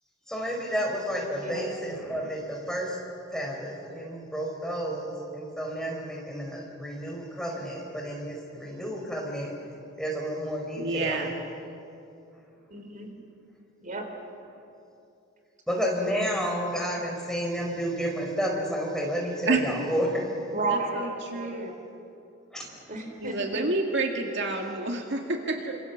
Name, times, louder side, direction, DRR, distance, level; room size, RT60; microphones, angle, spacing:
voice 1, 0.3-3.0 3.3-9.5 10.0-11.3 15.7-20.3 22.5-22.9, equal, 5° left, -1 dB, 5.1 m, -31 dB
voice 2, 10.8-11.3 19.5-19.6 20.9-21.7 23.2-25.8, right 3 dB, 60° right, 2 dB, 2.1 m, -28 dB
voice 3, 12.7-13.1 13.8-14.1 20.5-21.8 22.9-23.6, right 3 dB, 40° right, 4 dB, 3.7 m, -33 dB
28.0 x 26.5 x 7.3 m, 2.7 s
head